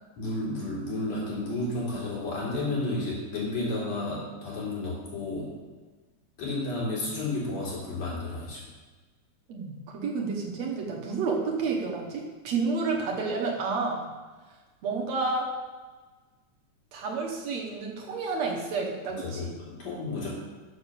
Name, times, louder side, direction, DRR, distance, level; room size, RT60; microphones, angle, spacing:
voice 1, 0.2-5.6 6.4-8.6 19.1-20.3, left 2 dB, 60° left, -7 dB, 4.4 m, -32 dB
voice 2, 9.5-14.0 14.8-15.5 16.9-19.5, right 4 dB, 65° right, 0 dB, 2.1 m, -30 dB
7.3 x 6.6 x 6.8 m, 1.3 s
omnidirectional pair, 3.5 m